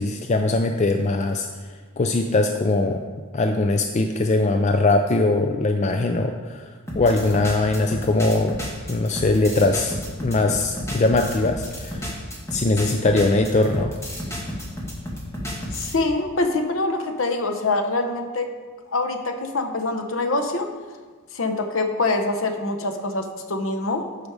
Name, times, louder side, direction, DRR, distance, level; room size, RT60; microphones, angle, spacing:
voice 1, 0.0-1.5 2.0-3.0 3.3-8.6 8.9-12.1 12.5-13.9, left 2 dB, 30° left, 5 dB, 0.4 m, -21 dB
sound 1, 6.9-16.0, equal, 10° left, 1.3 m, -32 dB
voice 2, 15.7-18.5 18.9-20.7 21.3-24.1, left 2 dB, 65° left, 5 dB, 0.9 m, -24 dB
12.0 x 5.1 x 4.8 m, 1.5 s
head